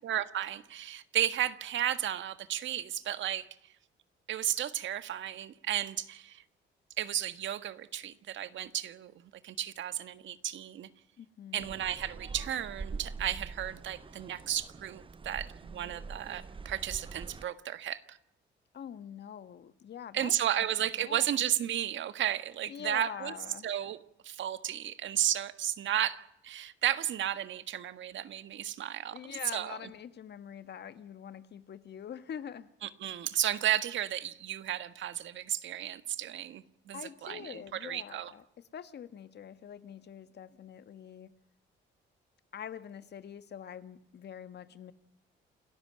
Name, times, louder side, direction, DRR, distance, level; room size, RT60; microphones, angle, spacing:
voice 1, 0.0-3.5 4.3-6.4 7.0-10.9 11.5-18.2 20.1-23.3 23.6-24.0 24.2-29.2 29.5-29.8 32.8-38.3, right 11 dB, 70° right, 12 dB, 1.6 m, -33 dB
voice 2, 11.2-11.7 18.7-20.3 21.0-21.3 22.7-23.6 29.1-32.7 36.9-38.4 38.7-41.3 42.5-44.9, left 8 dB, 60° left, 12 dB, 1.6 m, -44 dB
sound 1, 11.6-17.5, right 4 dB, 25° right, 0.9 m, -44 dB
28.5 x 13.5 x 9.9 m, 0.74 s
cardioid pair, 90°, 20 cm